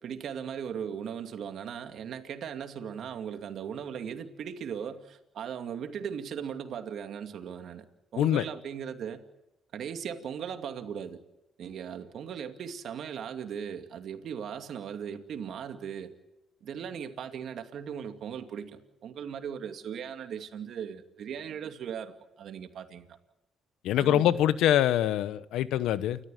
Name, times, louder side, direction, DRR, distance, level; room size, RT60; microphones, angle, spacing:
voice 1, 0.0-7.8 8.1-9.2 9.7-11.2 11.6-16.1 16.6-23.1 24.0-24.4, right 8 dB, 70° right, 2.4 m, -38 dB
voice 2, 23.8-26.2, left 12 dB, 90° left, 0.9 m, -24 dB
29.0 x 14.0 x 9.3 m
cardioid pair, 90°, 0 cm